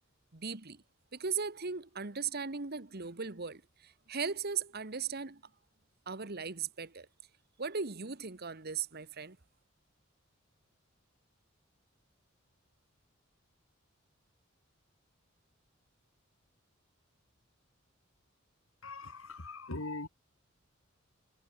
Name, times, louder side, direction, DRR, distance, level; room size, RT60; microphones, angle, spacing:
voice 1, 0.3-0.8 1.1-5.4 6.1-7.1 7.6-9.4, right 5 dB, 50° right, 1.4 m, -38 dB
voice 2, 18.8-20.1, left 2 dB, 85° left, 3.2 m, -41 dB
head